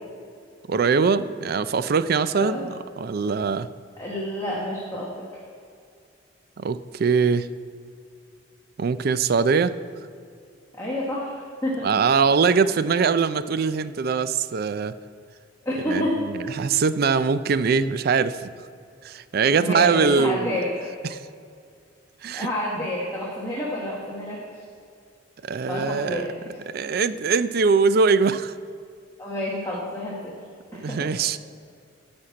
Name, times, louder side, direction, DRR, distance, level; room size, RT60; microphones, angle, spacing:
voice 1, 0.7-3.7 6.6-7.5 8.8-9.7 11.8-14.9 15.9-16.0 16.6-18.5 19.0-20.6 21.0-21.2 22.2-22.5 22.8-22.9 25.4-26.3 26.7-28.5 30.7-31.4, right 5 dB, 50° right, 14 dB, 0.4 m, -22 dB
voice 2, 2.3-2.7 4.0-5.4 10.7-12.0 15.6-16.3 17.7-17.8 19.6-20.7 22.3-24.4 25.7-26.6 29.2-30.4 30.7-31.1, left 1 dB, 15° left, -6 dB, 1.3 m, -29 dB
13.0 x 4.3 x 8.4 m, 2.3 s
head